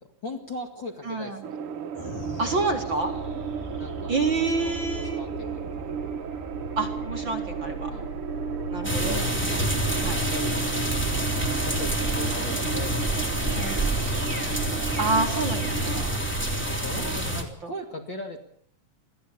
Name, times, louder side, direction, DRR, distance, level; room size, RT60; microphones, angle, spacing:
voice 1, 0.2-1.6 3.8-5.7 7.9-8.2 9.0-9.4 10.1-10.6 11.3-12.9 13.4-14.2 15.9-16.3 16.7-18.4, left 2 dB, 40° left, 3 dB, 2.2 m, -38 dB
voice 2, 1.0-1.4 2.4-3.1 4.1-5.2 6.8-7.9 8.7-9.2 10.0-10.2 13.5-13.9 15.0-16.1 16.9-17.7, right 3 dB, 40° right, 2 dB, 2.4 m, -28 dB
sound 1, 1.4-16.0, right 7 dB, 70° right, 1.3 m, -34 dB
sound 2, 1.9-12.6, right 1 dB, 65° left, 4.6 m, -39 dB
sound 3, 8.8-17.4, right 1 dB, 5° left, 2.8 m, -27 dB
21.5 x 15.0 x 8.5 m, 0.63 s
omnidirectional pair, 4.0 m